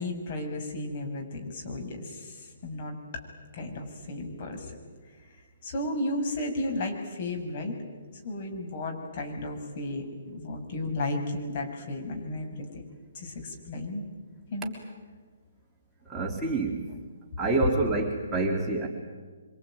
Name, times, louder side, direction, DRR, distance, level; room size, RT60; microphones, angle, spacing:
voice 1, 0.0-3.0 3.5-4.7 5.6-7.8 8.2-12.8 13.1-14.1 14.5-14.7, left 2 dB, 45° left, 2 dB, 6.5 m, -34 dB
voice 2, 16.1-16.8 17.4-18.9, right 3 dB, 10° right, -2 dB, 3.6 m, -27 dB
25.5 x 25.0 x 9.1 m, 1.4 s
figure-of-eight pair, 135°, 0 cm